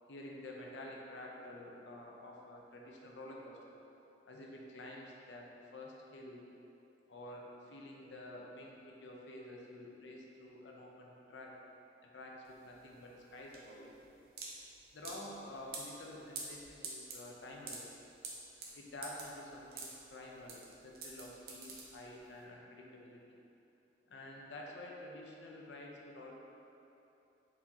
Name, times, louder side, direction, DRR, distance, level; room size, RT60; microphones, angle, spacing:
voice 1, 0.1-3.8 4.3-6.4 7.1-11.6 12.0-14.0 14.9-17.9 18.7-23.4 24.1-26.4, left 1 dB, 90° left, -1 dB, 0.6 m, -50 dB
sound 1, 12.5-22.4, right 4 dB, 55° right, 0.6 m, -48 dB
4.7 x 3.9 x 2.9 m, 2.9 s
head